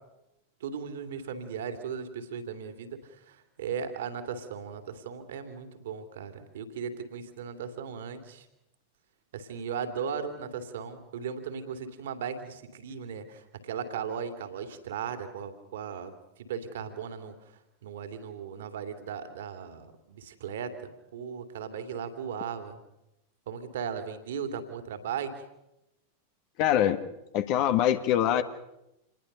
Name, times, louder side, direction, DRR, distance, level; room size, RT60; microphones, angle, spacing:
voice 1, 0.6-8.5 9.3-22.8 23.5-25.3, right 7 dB, 60° right, 9 dB, 2.8 m, -37 dB
voice 2, 26.6-27.0 27.3-28.4, left 11 dB, 45° left, 10 dB, 1.6 m, -23 dB
27.5 x 20.5 x 6.8 m, 0.89 s
figure-of-eight pair, 90°, 0 cm